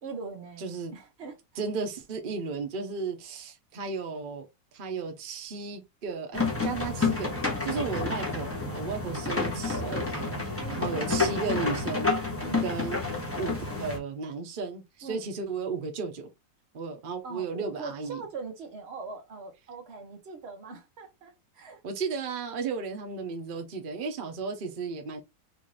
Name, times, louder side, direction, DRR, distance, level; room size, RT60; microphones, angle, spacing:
voice 1, 0.0-0.7 0.9-1.4 10.6-11.0 12.4-12.8 15.0-15.2 17.2-21.8, right 4 dB, 45° right, 1.0 m, -41 dB
voice 2, 0.6-0.9 1.6-4.5 4.7-7.3 7.6-12.1 12.6-13.0 13.4-16.3 16.7-18.2 21.8-25.2, right 4 dB, 60° right, 0.5 m, -34 dB
sound 1, 6.3-14.0, left 3 dB, 10° left, 0.7 m, -29 dB
4.0 x 2.5 x 3.2 m
omnidirectional pair, 2.0 m